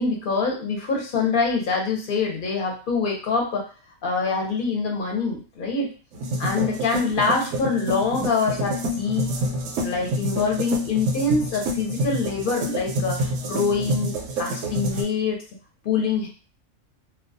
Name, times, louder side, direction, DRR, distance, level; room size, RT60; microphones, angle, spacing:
voice 1, 0.0-3.7 4.0-5.9 6.4-9.4 9.8-13.2 13.5-14.1 14.4-15.4 15.8-16.3, left 4 dB, 55° left, 1 dB, 0.7 m, -24 dB
sound 1, 6.1-15.0, equal, 75° right, 0.9 m, -28 dB
2.2 x 2.2 x 2.6 m, 0.36 s
omnidirectional pair, 1.3 m